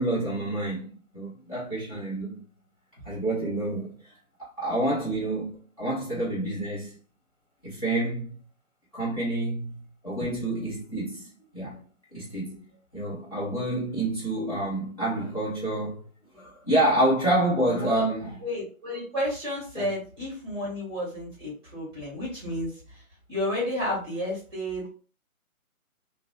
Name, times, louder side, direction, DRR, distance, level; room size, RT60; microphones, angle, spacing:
voice 1, 0.0-2.4 3.0-4.0 4.4-7.0 7.6-8.3 8.9-11.8 12.1-12.6 12.9-16.1 16.3-18.4 19.7-19.9, right 1 dB, 25° left, 0.7 m, -28 dB
voice 2, 18.4-22.7 23.3-24.9, left 1 dB, 20° right, 0.9 m, -31 dB
2.6 x 2.0 x 2.6 m
figure-of-eight pair, 155°, 43 cm